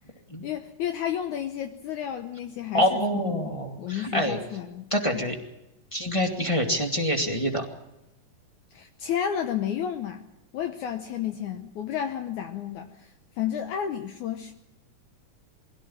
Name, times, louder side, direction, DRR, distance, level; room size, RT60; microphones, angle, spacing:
voice 1, 0.4-4.9 5.1-5.3 8.7-10.2 10.5-14.5, left 9 dB, 70° left, 7 dB, 2.2 m, -32 dB
voice 2, 2.7-4.4 4.9-5.4 5.9-7.7, equal, 10° left, 3 dB, 1.8 m, -26 dB
22.0 x 16.5 x 8.6 m, 0.95 s
omnidirectional pair, 4.0 m